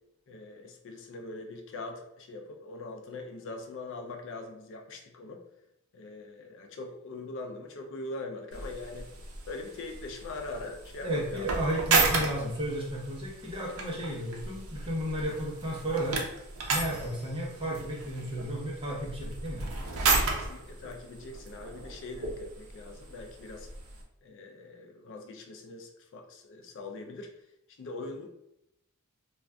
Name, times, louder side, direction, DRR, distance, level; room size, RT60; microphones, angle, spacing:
voice 1, 0.3-5.4 5.9-9.1 9.5-11.5 20.3-23.7 24.2-27.3 27.8-28.3, left 2 dB, 55° left, 3 dB, 0.4 m, -42 dB
sound 1, 8.5-24.0, right 3 dB, 70° right, 0.6 m, -34 dB
voice 2, 11.0-16.2 16.7-19.7, right 1 dB, 25° right, -3 dB, 0.7 m, -33 dB
2.4 x 2.3 x 3.3 m, 0.83 s
head